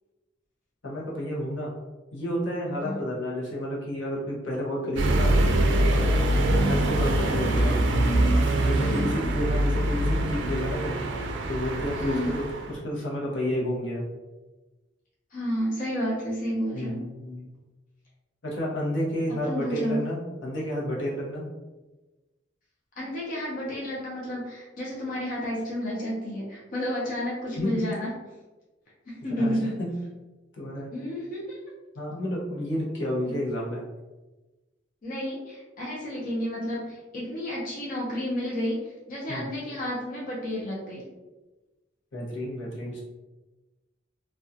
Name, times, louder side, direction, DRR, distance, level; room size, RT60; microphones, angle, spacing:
voice 1, 0.8-1.7 2.1-5.4 5.9-6.0 6.3-7.8 8.5-11.0 11.5-14.0 16.7-17.5 18.4-21.4 27.6-27.9 29.4-29.9 30.5-30.9 31.9-33.8 39.3-39.5 42.1-43.0, equal, 80° left, -4 dB, 0.8 m, -31 dB
sound 1, 5.0-12.7, right 1 dB, 70° right, 0.4 m, -24 dB
voice 2, 6.5-6.8 8.7-9.1 11.9-12.3 15.3-17.0 19.5-20.0 23.0-28.1 29.1-29.8 30.9-31.6 33.2-33.4 35.0-38.8 39.1-41.0, equal, 45° left, -5 dB, 0.6 m, -31 dB
2.3 x 2.2 x 2.6 m, 1.1 s
head